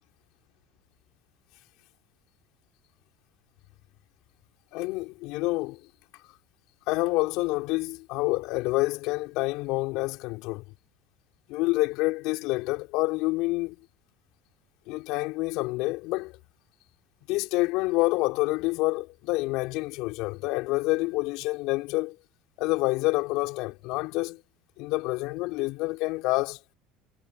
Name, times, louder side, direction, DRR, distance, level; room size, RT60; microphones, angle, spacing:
voice 1, 4.7-5.8 6.9-10.6 11.5-13.8 14.9-16.4 17.3-22.2 22.6-24.4 24.8-26.6, left 22 dB, 70° left, 5.1 m, -27 dB
supercardioid pair, 95°, 0 cm